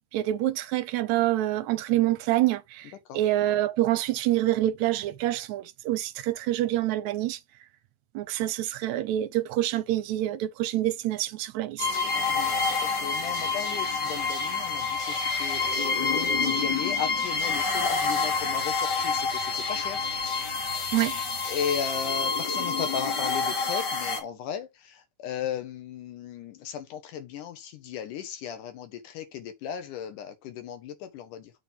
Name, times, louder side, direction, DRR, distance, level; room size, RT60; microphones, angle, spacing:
voice 1, 0.1-2.8 3.1-7.4 8.2-11.9 20.9-21.2, right 14 dB, 75° right, 1.9 m, -26 dB
sound 1, 11.8-24.2, left 4 dB, 40° left, 1.8 m, -28 dB
voice 2, 12.1-12.5 12.8-20.1 21.5-31.5, left 8 dB, 90° left, 2.8 m, -36 dB
6.9 x 3.4 x 5.7 m
omnidirectional pair, 3.5 m